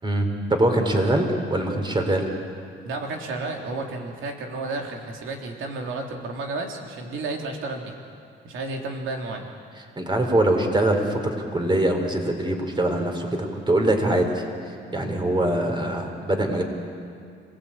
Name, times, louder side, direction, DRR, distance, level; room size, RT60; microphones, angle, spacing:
voice 1, 0.0-2.3 10.0-14.4 14.9-16.6, right 1 dB, 25° right, 4 dB, 4.1 m, -23 dB
voice 2, 2.8-7.9 8.4-9.5, right 3 dB, 80° right, 2 dB, 3.3 m, -32 dB
26.0 x 18.0 x 8.8 m, 2.3 s
cardioid pair, 90°, 20 cm